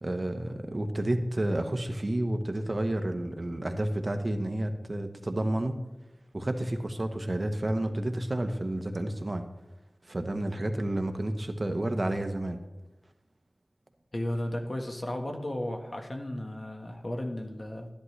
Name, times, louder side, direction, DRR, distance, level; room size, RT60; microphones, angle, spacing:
voice 1, 0.0-5.8 6.3-9.5 10.0-12.6, right 1 dB, 45° right, 7 dB, 1.0 m, -30 dB
voice 2, 14.1-17.9, left 1 dB, 50° left, 3 dB, 1.5 m, -34 dB
12.5 x 10.5 x 3.3 m, 1.0 s
wide cardioid pair, 55°, 0 cm